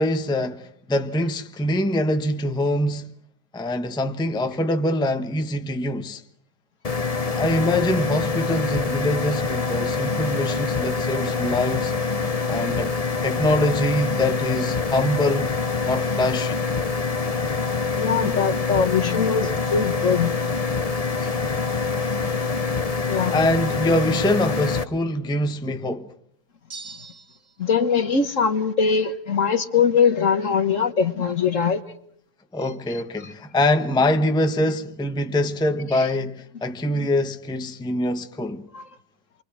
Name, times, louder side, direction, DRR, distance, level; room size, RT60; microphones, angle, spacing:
voice 1, 0.0-3.1 3.5-6.2 7.3-11.9 12.4-12.9 13.2-15.5 15.8-16.6 23.0-26.1 32.5-38.6, left 1 dB, 5° left, 0.9 m, -24 dB
sound 1, 6.8-24.8, left 4 dB, 25° left, 0.9 m, -25 dB
voice 2, 18.0-20.4 22.0-22.1 23.1-23.4 27.6-31.8 35.9-36.1 38.7-38.8, left 6 dB, 50° left, 1.5 m, -22 dB
sound 2, 26.7-27.7, right 4 dB, 30° right, 1.4 m, -41 dB
28.5 x 24.5 x 6.1 m
omnidirectional pair, 1.8 m